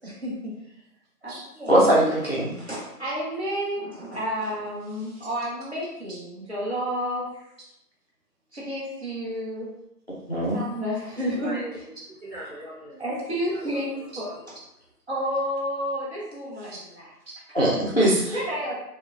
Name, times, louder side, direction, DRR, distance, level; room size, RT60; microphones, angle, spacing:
voice 1, 0.0-0.5 1.2-1.8 2.6-7.4 8.5-9.7 10.5-11.6 13.0-14.3 15.1-17.1 17.5-17.7 18.3-18.8, equal, 40° right, -6 dB, 1.1 m, -31 dB
voice 2, 1.7-2.5 10.3-10.6 17.5-18.4, right 1 dB, 40° left, -5 dB, 0.5 m, -21 dB
voice 3, 11.1-13.0 13.5-14.5, right 1 dB, 10° right, -19 dB, 1.5 m, -41 dB
4.8 x 2.2 x 2.5 m, 0.79 s
hypercardioid pair, 175°, 49 cm